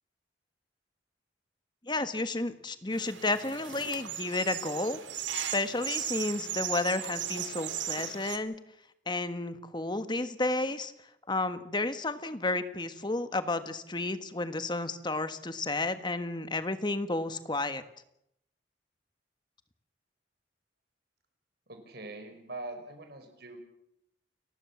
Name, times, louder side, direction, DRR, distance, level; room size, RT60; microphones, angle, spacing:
voice 1, 1.8-5.0 5.3-8.5 9.1-10.9 11.3-17.8, left 2 dB, 25° left, 10 dB, 1.5 m, -32 dB
sound 1, 2.9-8.4, right 10 dB, 80° right, 1.9 m, -37 dB
voice 2, 21.7-23.6, right 2 dB, 60° right, 6 dB, 5.4 m, -43 dB
30.0 x 15.5 x 7.2 m, 0.77 s
head